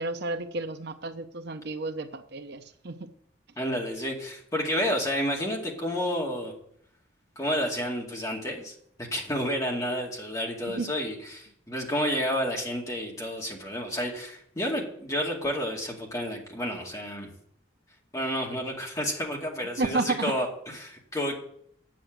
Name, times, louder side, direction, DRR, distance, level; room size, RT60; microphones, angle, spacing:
voice 1, 0.0-3.0 10.7-10.9 19.8-20.3, right 3 dB, 60° right, 8 dB, 0.8 m, -31 dB
voice 2, 3.6-6.5 7.4-17.3 18.1-21.3, equal, 20° left, -1 dB, 2.2 m, -30 dB
9.1 x 7.5 x 7.6 m, 0.68 s
head